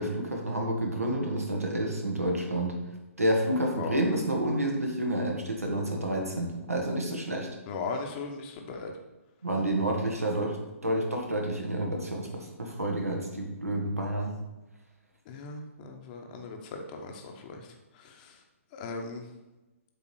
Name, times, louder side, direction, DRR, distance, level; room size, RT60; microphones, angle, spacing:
voice 1, 0.0-2.7 3.2-7.5 9.4-10.6 10.8-14.3, right 1 dB, 85° right, 1 dB, 1.9 m, -29 dB
voice 2, 7.7-8.9 15.3-17.7 17.9-18.4 18.7-19.3, left 4 dB, 35° left, 3 dB, 1.0 m, -38 dB
7.8 x 3.6 x 6.2 m, 1.0 s
figure-of-eight pair, 130°, 8 cm